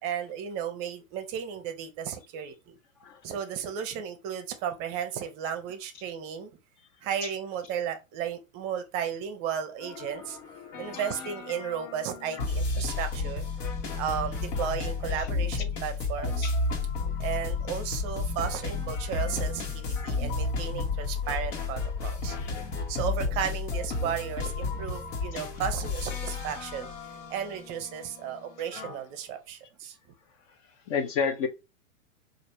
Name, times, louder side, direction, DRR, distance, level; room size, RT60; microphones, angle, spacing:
voice 1, 0.0-2.7 3.2-6.5 7.0-10.4 10.8-13.5 14.0-16.5 17.2-22.4 22.9-26.9 27.3-30.0, right 8 dB, 35° right, 0.6 m, -34 dB
sound 1, 9.8-29.0, left 4 dB, 65° left, 1.4 m, -32 dB
voice 2, 30.9-31.5, left 6 dB, 40° left, 0.6 m, -30 dB
3.1 x 2.5 x 4.4 m
hypercardioid pair, 115°, 41 cm